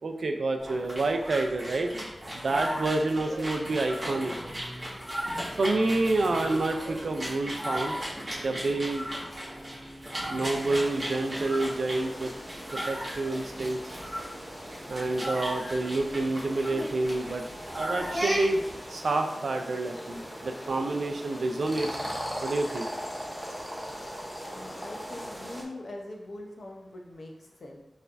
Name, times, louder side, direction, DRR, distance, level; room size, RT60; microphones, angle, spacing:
voice 1, 0.0-1.9 2.3-4.3 5.6-7.9 8.4-9.1 10.3-12.3 12.7-13.8 14.9-17.5 17.7-18.6 18.9-22.1 22.4-22.9, right 2 dB, 70° right, 5 dB, 0.3 m, -28 dB
sound 1, 0.6-18.8, equal, 25° right, 1.4 m, -36 dB
sound 2, 10.5-25.6, equal, ahead, 0.7 m, -40 dB
voice 2, 24.5-27.8, left 1 dB, 60° left, 1 dB, 0.7 m, -42 dB
4.5 x 3.3 x 2.5 m, 0.93 s
wide cardioid pair, 110°, 0 cm